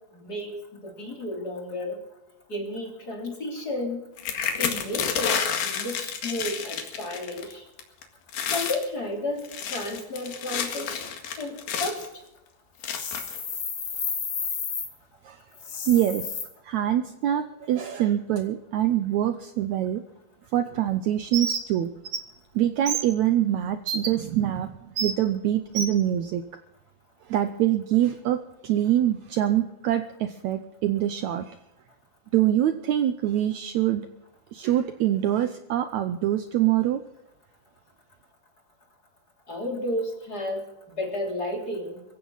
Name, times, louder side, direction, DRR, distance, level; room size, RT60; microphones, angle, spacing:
voice 1, 0.2-2.0 2.5-4.0 4.6-7.6 8.4-10.9 11.4-12.0 39.5-42.0, left 1 dB, 25° left, 1 dB, 3.3 m, -32 dB
sound 1, 4.2-7.5 7.8-8.0 8.3-8.8 9.4-12.1 12.8-13.4 14.1-14.2 14.5-14.8, left 7 dB, 80° left, 3.8 m, -30 dB
sound 2, 12.8-14.9 15.5-16.4, left 6 dB, 60° left, 4.5 m, -32 dB
voice 2, 15.9-16.4 16.6-20.0 20.5-21.9 22.5-26.4 27.3-28.4 28.6-31.6 32.3-34.1 34.5-37.0, right 12 dB, 85° right, 9 dB, 1.6 m, -24 dB
Bird, 21.3-21.6 22.0-22.2 22.9-23.0 23.9-24.1 25.0-25.1 25.7-25.9, right 6 dB, 45° right, 2.0 m, -27 dB
22.5 x 16.0 x 4.0 m, 0.91 s
omnidirectional pair, 4.3 m